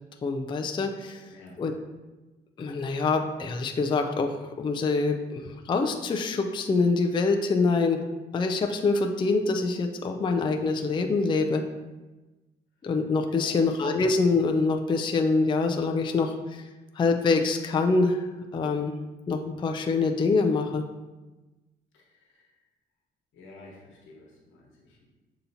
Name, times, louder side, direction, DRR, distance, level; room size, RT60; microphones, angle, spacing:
voice 1, 0.2-1.2 1.6-1.7 2.6-8.0 8.3-11.6 12.8-16.6 17.0-18.2 18.5-19.0 19.3-20.8, left 3 dB, 25° left, 4 dB, 0.4 m, -25 dB
voice 2, 13.3-13.7 21.9-22.5 23.3-25.0, left 2 dB, 80° left, -2 dB, 1.2 m, -51 dB
6.8 x 2.8 x 2.7 m, 1.1 s
cardioid pair, 90°, 20 cm